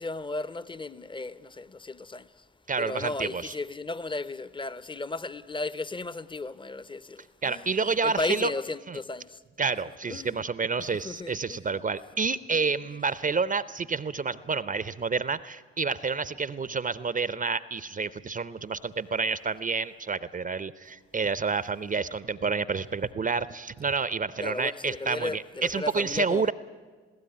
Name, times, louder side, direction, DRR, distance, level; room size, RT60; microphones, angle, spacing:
voice 1, 0.0-2.5 2.8-9.4 10.1-10.4 11.0-11.8 24.4-26.5, left 3 dB, 15° left, 0.7 m, -35 dB
voice 2, 2.7-3.5 7.4-8.5 8.9-9.0 9.6-26.5, right 4 dB, 25° right, 0.7 m, -29 dB
21.0 x 16.0 x 9.2 m
figure-of-eight pair, 45°, 34 cm